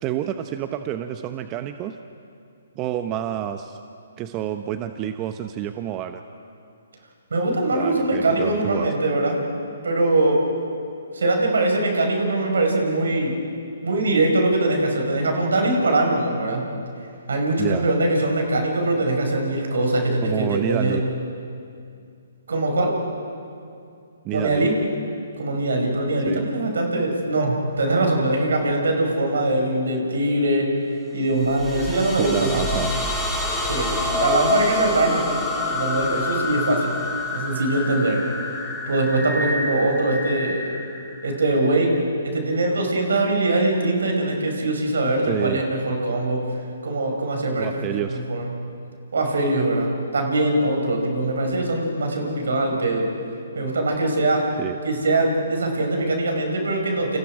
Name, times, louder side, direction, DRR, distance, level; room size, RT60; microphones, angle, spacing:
voice 1, 0.0-1.9 2.8-3.8 4.2-6.2 7.7-8.9 17.6-17.9 20.2-21.0 24.2-24.7 26.3-26.5 32.2-32.9 45.3-45.6 47.6-48.2 54.6-54.8, right 11 dB, 25° right, 8 dB, 0.9 m, -28 dB
voice 2, 7.3-9.4 9.8-10.4 11.1-13.3 13.8-16.6 17.3-21.0 22.5-23.0 24.3-24.7 25.4-30.7 31.1-32.8 33.7-35.4 35.6-36.9 37.3-38.2 38.9-40.7 41.2-42.0 42.2-46.5 46.8-48.5 49.1-53.1 53.5-54.5 54.8-57.2, right 2 dB, 75° right, 1 dB, 5.7 m, -22 dB
sound 1, 31.4-42.0, left 2 dB, 5° left, 3.8 m, -28 dB
29.5 x 28.0 x 5.0 m, 2.4 s
hypercardioid pair, 135°, 0 cm